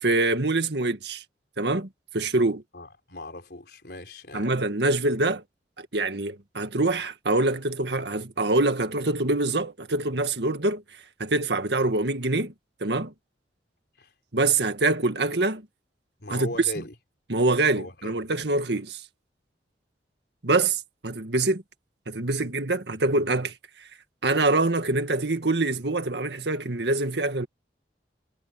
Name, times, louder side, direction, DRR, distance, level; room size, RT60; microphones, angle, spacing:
voice 1, 0.0-1.2 1.6-1.9 2.1-2.6 4.3-5.4 5.8-10.8 11.2-12.5 12.8-13.1 14.3-15.6 16.3-16.5 17.3-19.0 20.4-21.6 22.1-23.5 24.2-27.5, right 2 dB, 70° right, 1.9 m, -25 dB
voice 2, 2.7-4.5 8.1-8.2 14.0-14.1 16.2-16.9 17.7-18.1, left 1 dB, 60° left, 4.7 m, -39 dB
head